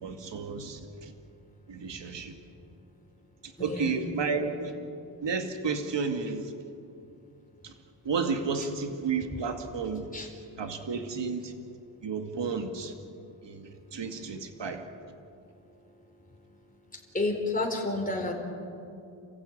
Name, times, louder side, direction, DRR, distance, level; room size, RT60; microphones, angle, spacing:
voice 1, 0.0-1.1 1.7-2.4 3.4-4.7 5.2-6.5 7.6-7.7 8.0-10.1 10.6-11.5 12.0-12.9 13.4-14.9, right 5 dB, 65° right, 5 dB, 2.2 m, -32 dB
voice 2, 3.6-4.0 10.1-10.3 17.1-18.3, left 2 dB, 15° left, 0 dB, 4.6 m, -30 dB
29.5 x 15.5 x 8.7 m, 2.6 s
cardioid pair, 85°, 47 cm